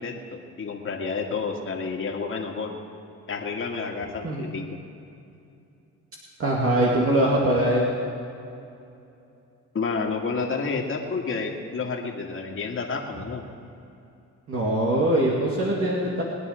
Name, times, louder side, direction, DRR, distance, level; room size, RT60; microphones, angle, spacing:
voice 1, 0.0-2.8 3.3-4.7 9.7-13.4, left 4 dB, 45° left, 1 dB, 2.2 m, -30 dB
voice 2, 6.4-7.9 14.5-16.2, right 1 dB, 45° right, -4 dB, 2.3 m, -22 dB
21.5 x 9.7 x 5.1 m, 2.7 s
cardioid pair, 90°, 30 cm